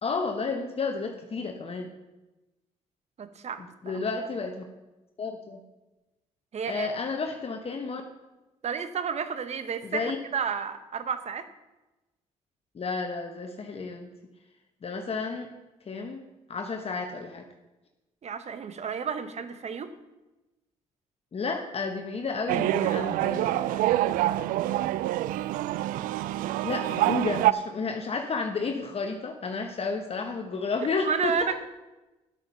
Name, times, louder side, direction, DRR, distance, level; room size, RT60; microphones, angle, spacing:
voice 1, 0.0-1.9 3.6-4.7 5.2-5.6 6.7-8.0 9.8-10.2 12.7-14.1 14.8-15.5 15.9-16.2 16.5-17.5 21.3-24.2 26.6-31.6, left 4 dB, 45° left, 4 dB, 1.2 m, -32 dB
voice 2, 3.2-4.3 6.5-6.9 8.6-11.5 18.2-19.9 31.0-31.6, right 6 dB, 50° right, 11 dB, 1.0 m, -32 dB
sound 1, 22.5-27.5, right 14 dB, 80° right, 0.4 m, -26 dB
10.0 x 8.8 x 5.5 m, 1.1 s
supercardioid pair, 60°, 14 cm